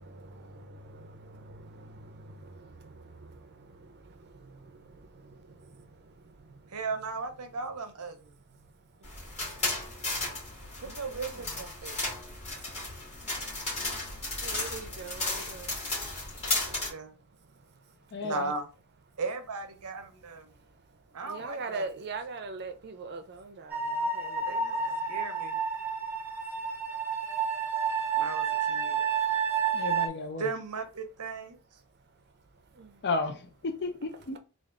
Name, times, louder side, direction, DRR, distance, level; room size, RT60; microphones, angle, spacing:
voice 1, 0.0-6.8 8.3-10.5 10.8-11.7 12.4-13.0 13.9-14.0 14.4-18.1 19.1-19.2 20.3-25.1 25.8-25.9 26.2-26.3 26.6-26.7 27.1-27.2 27.6-27.9 32.1-32.2 32.7-33.0, right 3 dB, 50° right, 0.6 m, -45 dB
voice 2, 6.7-8.2 10.8-12.0 16.4-17.1 18.2-18.7 19.2-20.5 21.1-22.0 24.5-24.7 25.1-25.6 28.1-29.0 30.4-31.6, right 4 dB, 85° right, 0.7 m, -37 dB
sound 1, 9.0-16.9, left 2 dB, 30° left, 1.7 m, -34 dB
voice 3, 18.1-18.5 29.7-30.5 33.0-34.4, left 3 dB, 50° left, 0.6 m, -33 dB
sound 2, 23.7-30.1, right 6 dB, 10° right, 0.7 m, -30 dB
3.5 x 2.5 x 3.6 m
head